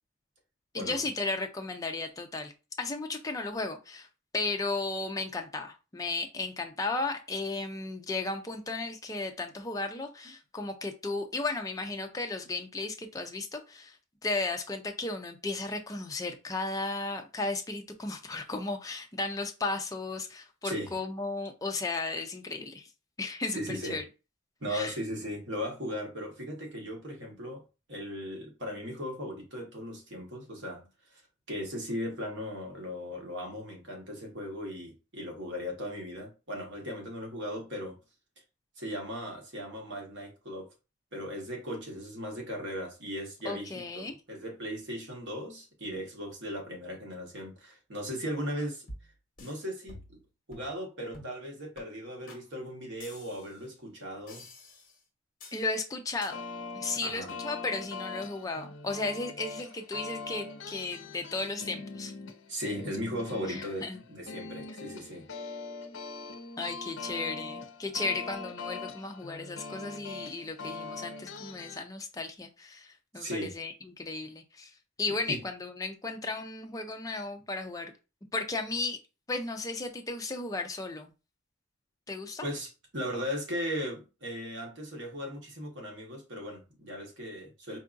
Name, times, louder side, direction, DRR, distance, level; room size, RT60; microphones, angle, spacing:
voice 1, 0.7-2.5 2.8-4.1 4.3-14.0 14.2-22.9 23.2-24.0 24.7-24.9 43.4-44.2 55.5-56.4 56.7-62.1 63.5-64.0 66.6-74.7 75.0-77.9 78.3-79.0 79.3-81.1 82.1-82.5, left 3 dB, 15° left, 0.4 m, -35 dB
voice 2, 20.6-20.9 23.5-24.0 24.6-27.6 27.9-30.9 31.5-38.0 38.8-40.7 41.1-48.9 49.4-50.2 50.5-54.5 57.0-57.3 62.5-65.3 73.1-73.5 75.3-75.4 82.4-87.8, equal, 65° right, 1.2 m, -37 dB
sound 1, 48.9-49.6 49.9-50.2 50.5-50.8 51.1-51.4 51.8-51.9 52.3-52.4 53.0-53.6 54.3-55.0 55.4-55.7 56.2-56.3, left 1 dB, 40° left, 1.1 m, -48 dB
sound 2, 56.3-71.8, left 4 dB, 65° left, 0.6 m, -42 dB
4.5 x 2.5 x 2.5 m
head